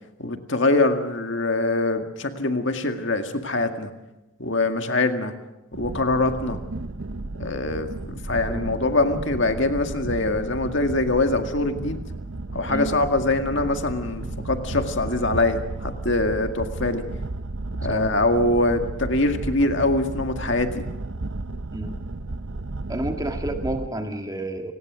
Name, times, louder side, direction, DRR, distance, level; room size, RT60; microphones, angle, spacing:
voice 1, 0.2-3.9 4.4-5.3 5.7-6.6 7.4-12.0 12.5-17.0 17.8-20.9, left 2 dB, 55° left, 6 dB, 2.0 m, -23 dB
sound 1, 5.7-23.9, right 2 dB, 65° right, 0.8 m, -33 dB
voice 2, 22.9-24.7, right 1 dB, 15° right, 5 dB, 2.0 m, -30 dB
29.0 x 19.0 x 6.2 m, 0.96 s
head